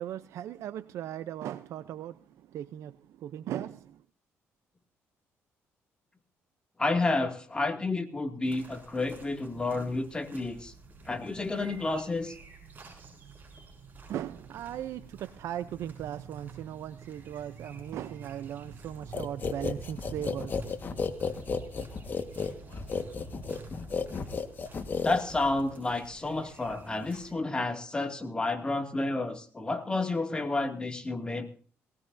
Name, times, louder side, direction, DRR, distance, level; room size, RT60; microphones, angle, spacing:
voice 1, 0.0-4.0 14.1-20.9, right 11 dB, 75° right, 0.6 m, -38 dB
voice 2, 6.8-10.7 11.1-12.3 25.0-31.5, left 2 dB, 20° left, 2.3 m, -30 dB
sound 1, 8.4-27.3, right 4 dB, 35° right, 7.2 m, -49 dB
sound 2, 19.1-25.6, left 5 dB, 40° left, 1.6 m, -33 dB
19.5 x 18.0 x 2.7 m
cardioid pair, 100°, 5 cm